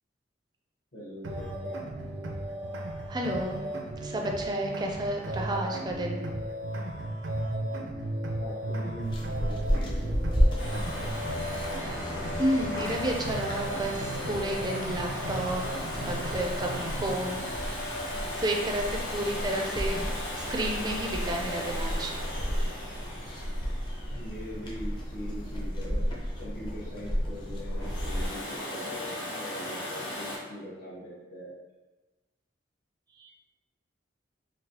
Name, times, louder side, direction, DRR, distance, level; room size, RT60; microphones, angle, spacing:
voice 1, 0.9-1.9 8.4-10.9 24.1-26.0 26.4-31.5, equal, 60° left, -13 dB, 1.1 m, -42 dB
sound 1, 1.2-17.2, right 1 dB, 85° right, 0.5 m, -35 dB
voice 2, 3.1-3.7 4.0-6.2 12.4-15.6 16.0-18.0 18.3-20.0 20.4-22.2 33.2-33.3, right 1 dB, 20° right, 1 dB, 0.4 m, -31 dB
sound 2, 9.0-28.3, equal, 25° left, 0.6 m, -33 dB
Domestic sounds home sounds, 10.6-25.3 27.6-30.4, left 1 dB, 90° left, 1.2 m, -37 dB
3.9 x 2.3 x 2.8 m, 1.2 s
head